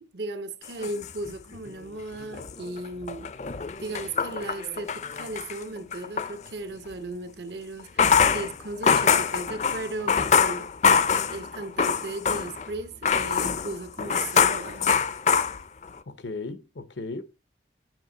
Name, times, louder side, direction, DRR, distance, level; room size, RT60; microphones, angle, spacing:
voice 1, 0.0-3.3 3.8-10.7 11.3-14.9, right 2 dB, 70° right, 0.9 m, -36 dB
sound 1, 0.6-1.8 2.2-6.3 7.8-12.7 13.0-16.0, left 6 dB, 40° left, 0.4 m, -24 dB
voice 2, 16.1-17.2, left 3 dB, 90° left, 0.8 m, -36 dB
9.1 x 5.1 x 3.8 m
head